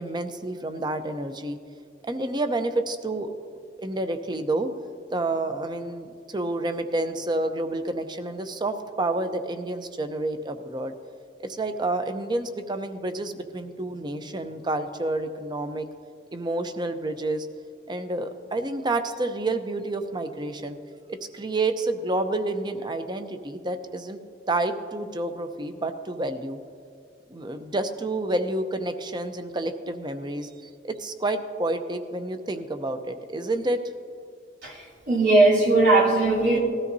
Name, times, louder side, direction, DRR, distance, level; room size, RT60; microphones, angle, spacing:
voice 1, 0.0-1.6 2.0-3.3 3.8-4.7 5.1-10.9 11.4-15.9 16.3-17.5 17.9-20.8 21.1-24.2 24.5-26.6 27.3-33.8, right 2 dB, 25° right, 8 dB, 0.6 m, -29 dB
voice 2, 35.1-36.6, right 2 dB, 75° right, -6 dB, 3.3 m, -18 dB
19.0 x 13.0 x 2.7 m, 2.3 s
head